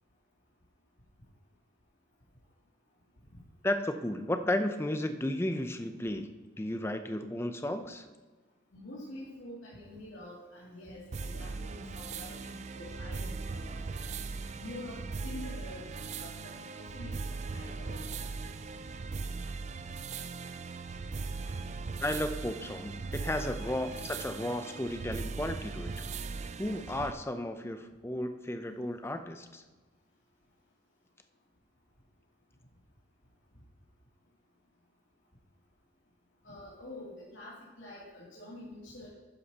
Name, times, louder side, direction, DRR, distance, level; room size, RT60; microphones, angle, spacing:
voice 1, 3.6-6.3 6.6-8.1 22.0-26.1 26.6-29.6, left 1 dB, 15° left, 8 dB, 0.5 m, -34 dB
voice 2, 8.7-13.9 14.5-15.8 16.2-18.0 23.1-23.2 36.4-39.1, left 1 dB, 85° left, -8 dB, 2.7 m, -46 dB
sound 1, 11.1-27.1, right 4 dB, 35° right, 0.4 m, -39 dB
12.0 x 9.6 x 2.9 m, 1.3 s
head